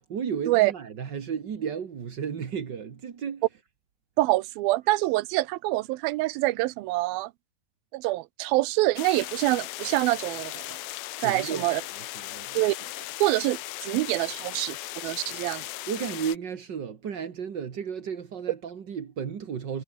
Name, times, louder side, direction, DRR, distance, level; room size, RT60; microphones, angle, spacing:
voice 1, 0.1-3.4 11.2-12.6 15.9-19.8, right 7 dB, 45° right, 1.6 m, -33 dB
voice 2, 4.2-7.3 7.9-10.8 11.2-11.8 12.5-14.8 15.0-15.6, right 19 dB, 85° right, 2.5 m, -26 dB
sound 1, 9.0-16.4, left 17 dB, 90° left, 2.7 m, -37 dB
omnidirectional pair, 4.1 m